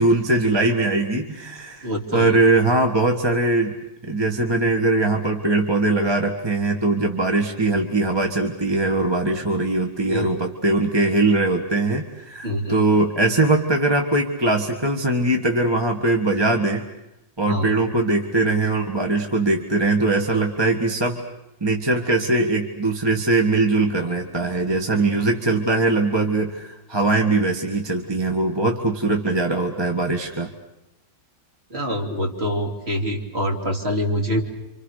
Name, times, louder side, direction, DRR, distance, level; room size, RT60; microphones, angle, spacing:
voice 1, 0.0-3.8 4.0-16.8 17.4-21.2 21.6-30.5, right 2 dB, 15° right, 2 dB, 1.8 m, -21 dB
voice 2, 1.8-2.4 10.1-10.4 12.4-12.8 17.5-17.7 31.7-34.4, equal, 35° right, 1 dB, 3.4 m, -25 dB
29.0 x 26.5 x 6.6 m, 0.93 s
omnidirectional pair, 2.0 m